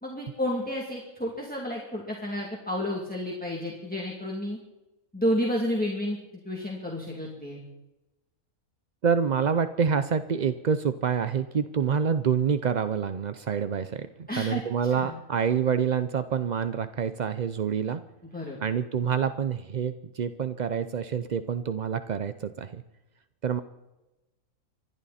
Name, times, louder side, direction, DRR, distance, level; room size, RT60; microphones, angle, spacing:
voice 1, 0.0-4.6 5.1-6.2 6.4-7.6 14.3-14.6 14.9-15.2 18.3-18.6, equal, 5° left, -3 dB, 2.6 m, -31 dB
voice 2, 9.0-18.0 18.6-22.8 23.4-23.6, right 7 dB, 55° right, 11 dB, 0.5 m, -27 dB
26.0 x 12.0 x 4.2 m, 1.0 s
omnidirectional pair, 1.5 m